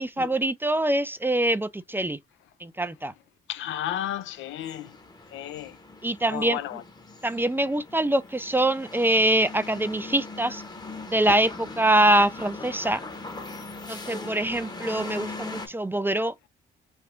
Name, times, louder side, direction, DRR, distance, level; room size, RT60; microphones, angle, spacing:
voice 1, 0.0-2.2 2.6-3.1 6.0-6.8 7.2-10.6 11.1-13.0 13.9-16.3, right 1 dB, 10° right, 0.4 m, -24 dB
voice 2, 3.5-4.9 5.3-5.8 6.3-6.8, left 11 dB, 75° left, 0.4 m, -33 dB
sound 1, 4.2-15.7, left 3 dB, 20° left, 0.9 m, -40 dB
3.3 x 2.7 x 2.4 m
cardioid pair, 90°, 20 cm